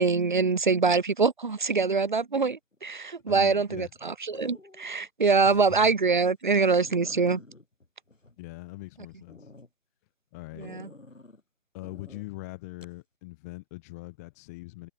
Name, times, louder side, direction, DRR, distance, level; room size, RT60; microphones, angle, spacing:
voice 1, 0.0-7.4 10.6-10.9, right 4 dB, 40° right, 0.4 m, -24 dB
sound 1, 2.7-3.1 4.3-5.1 5.5-5.6 6.1-6.2 6.5-6.6 6.8-8.8 9.3-9.7 10.6-11.4 11.8-12.2 12.8-13.0, left 2 dB, 80° left, 4.8 m, -49 dB
voice 2, 3.3-3.9 5.4-5.8 8.4-9.5 10.3-10.7 11.7-14.9, left 22 dB, 15° left, 1.8 m, -42 dB
figure-of-eight pair, 150°, 38 cm